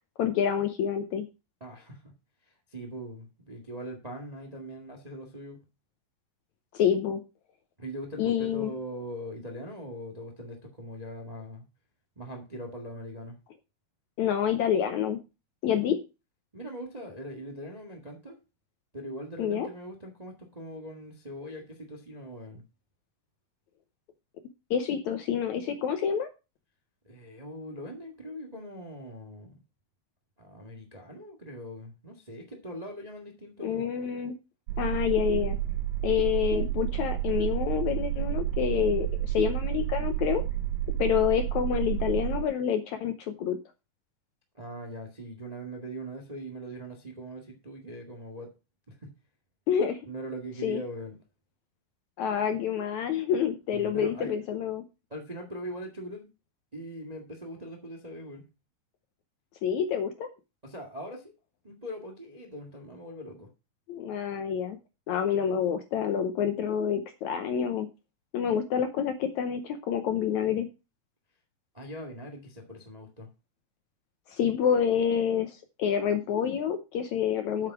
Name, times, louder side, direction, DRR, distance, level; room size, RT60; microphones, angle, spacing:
voice 1, 0.2-1.3 6.7-7.2 8.2-8.7 14.2-15.2 15.6-16.0 19.4-19.7 24.7-26.3 33.6-34.3 34.8-35.6 36.0-40.4 41.0-43.6 49.7-50.0 50.6-50.8 52.2-54.8 59.6-60.3 63.9-64.8 65.1-67.9 68.3-70.7 74.3-77.7, left 8 dB, 75° left, 1.9 m, -27 dB
voice 2, 1.6-2.1 2.7-5.6 7.8-11.6 12.1-13.4 16.5-18.4 18.9-22.6 27.0-29.6 30.4-33.9 44.5-48.5 48.9-49.1 50.0-51.1 53.7-54.3 55.1-56.3 56.7-58.5 60.6-61.3 61.6-63.5 71.7-73.3, equal, 20° right, 1.0 m, -41 dB
sound 1, 34.7-42.4, right 12 dB, 80° right, 2.3 m, -30 dB
8.1 x 7.0 x 5.9 m
omnidirectional pair, 4.1 m